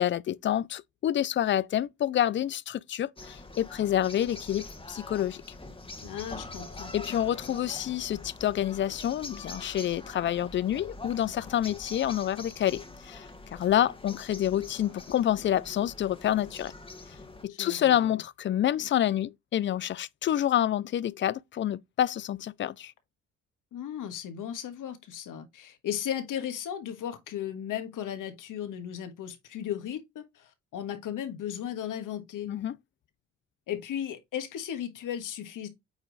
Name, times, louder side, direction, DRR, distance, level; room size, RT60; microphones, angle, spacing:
voice 1, 0.0-5.4 6.9-16.7 17.4-22.9 32.5-32.8, left 11 dB, 35° left, 0.4 m, -28 dB
sound 1, 3.2-17.4, left 2 dB, 15° left, 1.3 m, -45 dB
voice 2, 6.0-6.9 17.5-18.2 23.7-32.5 33.7-35.7, left 10 dB, 70° left, 1.5 m, -36 dB
8.8 x 3.0 x 3.9 m
cardioid pair, 95°, 33 cm